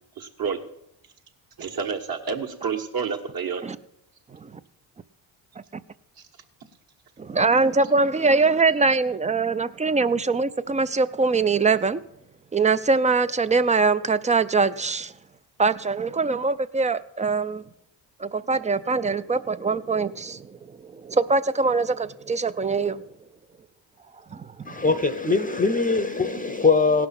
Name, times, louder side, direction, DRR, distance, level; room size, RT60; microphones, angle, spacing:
voice 1, 0.2-0.6 1.6-3.6, right 6 dB, 50° right, 1.6 m, -29 dB
voice 2, 7.2-12.0 12.5-15.1 15.6-17.6 18.2-23.0 24.3-24.8, right 4 dB, 20° right, 0.3 m, -23 dB
voice 3, 24.6-27.1, left 4 dB, 20° left, 0.7 m, -22 dB
17.0 x 5.9 x 5.9 m
supercardioid pair, 75°, 45 cm